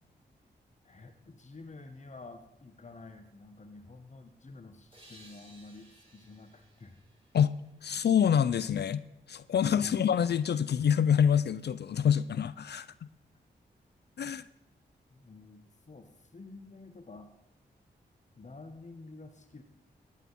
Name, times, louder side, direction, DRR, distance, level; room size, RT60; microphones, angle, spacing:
voice 1, 0.8-6.9 7.9-8.1 9.6-10.1 13.3-13.4 15.1-17.3 18.4-19.6, left 3 dB, 40° left, 7 dB, 1.4 m, -50 dB
sound 1, 4.9-8.4, right 1 dB, 30° right, 4.8 m, -59 dB
voice 2, 7.8-9.0 9.3-13.1 14.2-14.5, left 8 dB, 60° left, 17 dB, 0.5 m, -26 dB
15.5 x 10.5 x 4.3 m, 0.93 s
supercardioid pair, 40°, 19 cm